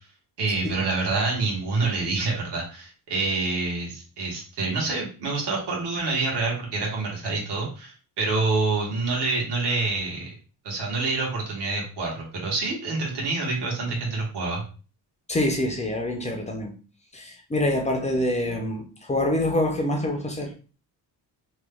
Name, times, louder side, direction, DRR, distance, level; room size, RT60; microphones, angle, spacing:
voice 1, 0.4-10.3 10.6-14.6, right 3 dB, 80° right, 1.4 m, -27 dB
voice 2, 15.3-16.7 17.1-20.5, left 1 dB, 20° left, 0.4 m, -26 dB
3.0 x 2.2 x 3.4 m
cardioid pair, 170°, 41 cm